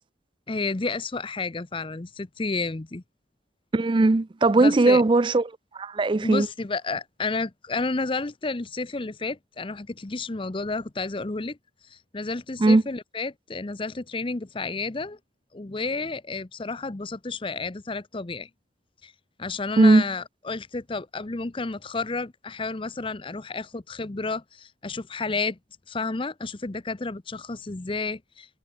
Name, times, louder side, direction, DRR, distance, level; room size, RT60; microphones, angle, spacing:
voice 1, 0.5-3.0 4.6-5.0 6.2-11.6 11.9-15.2 15.5-18.5 19.0-19.1 19.4-25.6 25.9-28.6, left 3 dB, 30° left, 0.7 m, -31 dB
voice 2, 3.7-5.4 5.7-6.5 12.6-12.8 19.8-20.0, right 2 dB, 25° right, 0.4 m, -18 dB
head